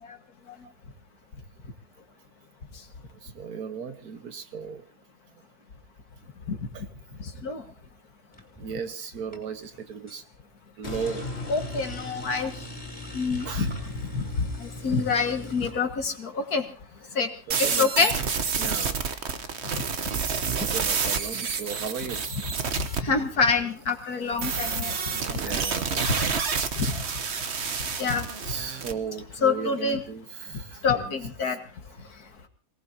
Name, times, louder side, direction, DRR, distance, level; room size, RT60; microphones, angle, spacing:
voice 1, 3.2-4.8 6.7-6.8 8.6-10.2 10.8-11.2 12.3-12.5 13.4-13.7 17.5-18.1 18.6-19.0 20.6-22.2 25.1-25.9 28.4-31.1 31.5-31.6, right 6 dB, 85° right, 8 dB, 1.8 m, -36 dB
voice 2, 7.2-7.6 11.5-12.5 13.1-13.7 14.0-16.7 17.1-17.3 17.6-18.1 19.7-19.8 22.8-25.6 25.9-26.4 26.8-27.0 28.0-28.3 29.4-30.0 30.5-31.6, left 4 dB, 85° left, 5 dB, 2.2 m, -27 dB
sound 1, 8.3-8.8 9.2-10.2 11.0-15.7, left 1 dB, 5° left, 3.4 m, -42 dB
sound 2, 10.8-15.9 16.4-16.5, left 2 dB, 45° left, 2.6 m, -41 dB
sound 3, 17.5-23.0 24.4-28.9, right 6 dB, 50° right, 1.3 m, -29 dB
27.0 x 18.0 x 2.8 m, 0.34 s
omnidirectional pair, 1.6 m